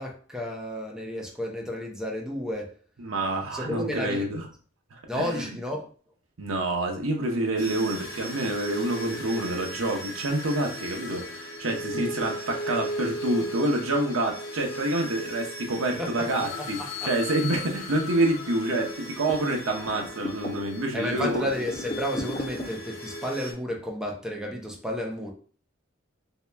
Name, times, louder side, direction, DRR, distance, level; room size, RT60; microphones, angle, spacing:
voice 1, 0.0-2.8 3.5-4.3 5.1-5.9 16.0-16.1 17.0-17.1 20.9-25.3, left 1 dB, 5° right, 0 dB, 0.7 m, -32 dB
voice 2, 3.0-4.4 4.9-5.5 6.4-16.8 17.0-21.5, right 1 dB, 70° right, 1 dB, 0.7 m, -27 dB
sound 1, 7.6-23.5, equal, 65° left, 0.9 m, -37 dB
sound 2, 17.6-17.7 17.9-18.4 18.8-20.8 21.1-22.8, equal, 30° left, 1.3 m, -37 dB
3.0 x 2.8 x 3.4 m, 0.41 s
head